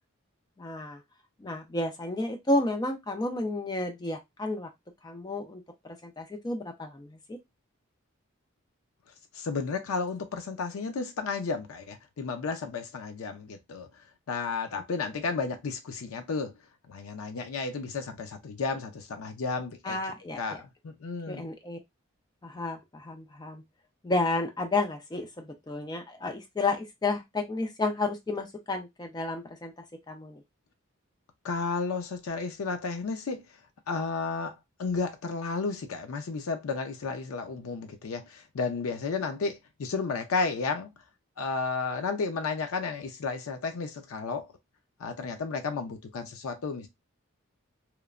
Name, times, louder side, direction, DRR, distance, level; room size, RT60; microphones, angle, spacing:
voice 1, 0.6-1.0 1.4-4.7 5.0-7.4 19.8-20.6 21.3-21.8 22.4-23.6 24.0-29.7 30.1-30.4, left 2 dB, 20° left, 0.3 m, -31 dB
voice 2, 9.3-13.9 14.3-16.5 16.9-20.0 20.4-21.5 31.4-33.4 33.9-40.9 41.4-44.5 45.0-46.9, left 4 dB, 80° left, 0.4 m, -32 dB
3.0 x 2.0 x 2.4 m
head